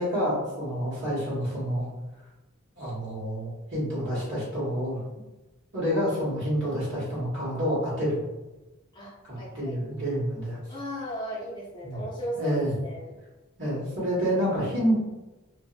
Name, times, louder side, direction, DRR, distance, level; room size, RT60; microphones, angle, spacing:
voice 1, 0.0-1.9 2.7-5.0 5.7-8.2 9.3-10.6 11.8-12.0 12.3-12.7 13.6-15.0, equal, 55° right, -7 dB, 1.4 m, -28 dB
voice 2, 8.9-9.8 10.7-13.2, equal, 20° left, -5 dB, 0.7 m, -36 dB
2.6 x 2.5 x 2.5 m, 1.1 s
head